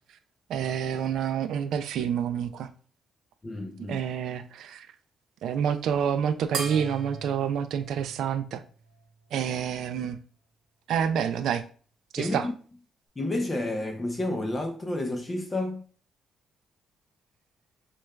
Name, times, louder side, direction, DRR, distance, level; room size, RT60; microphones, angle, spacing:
voice 1, 0.5-2.7 3.9-4.9 5.4-8.6 9.3-10.2 10.9-11.6 12.1-12.5, right 8 dB, 75° right, 0.3 m, -28 dB
voice 2, 3.4-4.0 12.2-12.5 13.2-15.8, left 2 dB, 25° left, 0.5 m, -30 dB
sound 1, 6.5-9.3, right 4 dB, 60° right, 0.8 m, -39 dB
6.1 x 2.3 x 2.3 m
cardioid pair, 90°, 0 cm